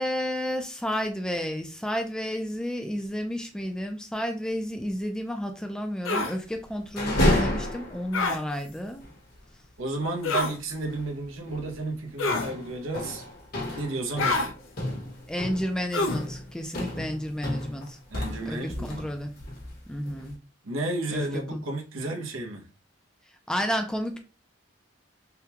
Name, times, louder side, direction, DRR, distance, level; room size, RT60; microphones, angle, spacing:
voice 1, 0.0-9.0 15.3-18.0 18.4-18.6 19.0-19.3 19.9-20.3 21.1-21.2 21.5-21.6 23.5-24.2, equal, 5° left, 0.4 m, -31 dB
sound 1, 6.0-6.3 8.1-8.4 10.2-10.6 12.2-12.5 14.2-14.5 15.9-16.2, left 3 dB, 80° left, 0.6 m, -26 dB
sound 2, 6.8-8.2 8.7-8.8 9.0-9.2 10.8-11.1 11.5-11.7 12.3-19.1 19.4-20.3, left 1 dB, 50° left, 1.0 m, -31 dB
voice 2, 9.8-13.3 13.8-14.4 18.1-19.1 20.6-22.7, right 2 dB, 90° right, 0.8 m, -32 dB
3.6 x 2.2 x 2.8 m
head